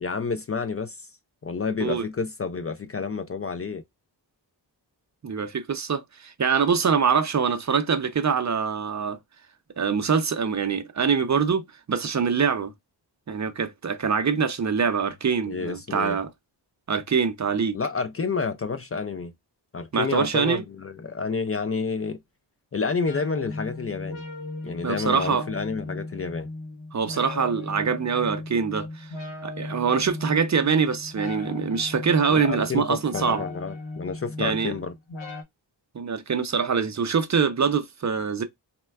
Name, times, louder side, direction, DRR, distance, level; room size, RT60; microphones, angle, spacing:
voice 1, 0.0-1.1 1.4-3.8 15.5-16.2 17.7-19.3 19.7-22.2 22.7-24.2 24.6-26.5 32.3-34.9, left 5 dB, 35° left, 0.4 m, -29 dB
voice 2, 5.2-9.2 9.8-12.7 13.3-16.3 16.9-17.8 19.9-20.6 24.8-25.5 26.9-29.1 29.4-33.4 34.4-34.8 35.9-38.4, right 6 dB, 40° right, 0.5 m, -24 dB
sound 1, 23.0-35.4, left 2 dB, 70° left, 1.2 m, -37 dB
4.1 x 2.2 x 2.2 m
cardioid pair, 70°, 45 cm